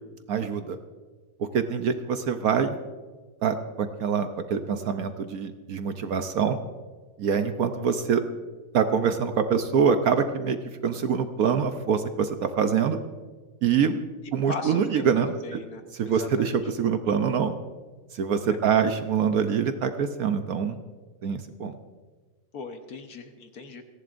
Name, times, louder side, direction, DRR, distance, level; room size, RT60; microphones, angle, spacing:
voice 1, 0.3-0.8 1.4-2.8 3.4-6.6 7.2-8.2 8.7-13.0 13.6-14.0 14.3-15.6 15.9-17.6 18.1-20.8 21.2-21.8, right 7 dB, 65° right, 8 dB, 1.1 m, -25 dB
voice 2, 14.5-15.1 15.4-16.6 18.5-18.7 22.5-23.8, left 4 dB, 60° left, 6 dB, 1.5 m, -38 dB
29.5 x 11.0 x 2.6 m, 1.4 s
omnidirectional pair, 1.9 m